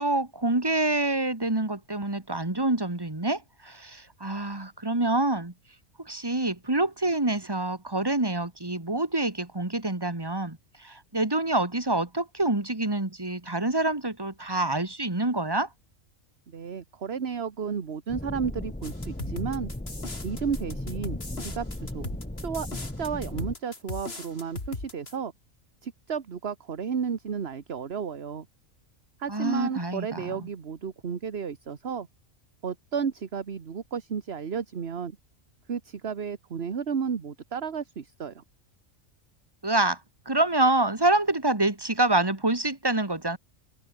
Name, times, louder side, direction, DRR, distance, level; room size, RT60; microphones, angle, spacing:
voice 1, 0.0-5.5 6.0-15.7 29.3-30.5 39.6-40.0 40.3-43.4, right 2 dB, 20° right, 2.1 m, -26 dB
voice 2, 16.5-19.7 20.2-21.7 21.9-22.1 22.4-25.3 25.8-28.5 29.2-32.1 32.6-35.2 35.7-38.4, right 6 dB, 50° right, 1.5 m, -33 dB
sound 1, 18.1-23.5, left 1 dB, 5° left, 1.0 m, -36 dB
sound 2, 18.8-25.1, left 3 dB, 50° left, 3.4 m, -38 dB
omnidirectional pair, 1.3 m